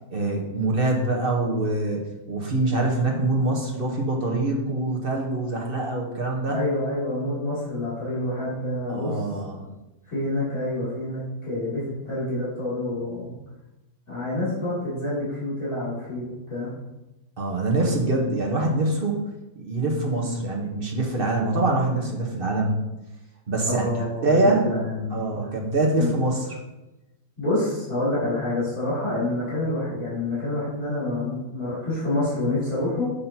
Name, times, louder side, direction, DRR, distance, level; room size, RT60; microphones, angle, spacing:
voice 1, 0.1-6.6 8.9-9.6 17.4-19.2 19.6-22.8 23.5-23.9 24.2-24.6 25.1-26.5, right 2 dB, 40° right, 0 dB, 1.2 m, -24 dB
voice 2, 6.5-9.2 10.1-13.3 14.1-16.7 23.6-25.4 26.0-26.1 27.4-33.1, left 1 dB, 60° left, -11 dB, 3.4 m, -27 dB
7.5 x 6.7 x 2.8 m, 1.0 s
omnidirectional pair, 1.7 m